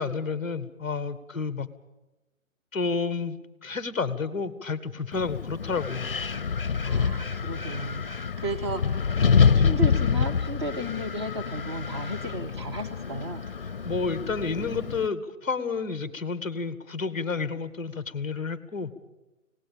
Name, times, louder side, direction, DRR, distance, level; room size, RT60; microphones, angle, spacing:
voice 1, 0.0-1.7 2.7-3.4 3.6-6.1 13.8-18.9, left 4 dB, 10° left, 13 dB, 0.9 m, -30 dB
Wind, 5.1-15.1, left 6 dB, 45° left, 0.7 m, -26 dB
voice 2, 6.8-9.1 9.5-13.5, right 1 dB, 20° right, 6 dB, 0.9 m, -34 dB
25.5 x 18.0 x 7.2 m, 1.1 s
figure-of-eight pair, 150°, 41 cm